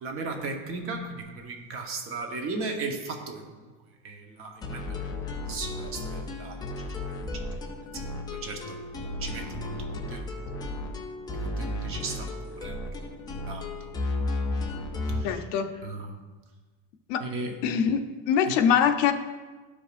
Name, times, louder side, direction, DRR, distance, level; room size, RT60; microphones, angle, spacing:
voice 1, 0.0-3.4 4.0-4.8 5.5-6.6 7.3-7.4 8.4-8.8 9.2-9.7 10.1-10.3 11.4-12.8 13.5-13.6 15.1-15.4 15.8-16.1 17.2-17.5, right 3 dB, 35° right, 3 dB, 1.0 m, -36 dB
sound 1, 4.6-15.3, left 2 dB, 10° left, 0.3 m, -34 dB
voice 2, 15.2-15.8 17.1-17.3 17.6-19.1, left 8 dB, 70° left, 7 dB, 0.7 m, -24 dB
13.5 x 5.1 x 2.5 m, 1.3 s
cardioid pair, 165°, 38 cm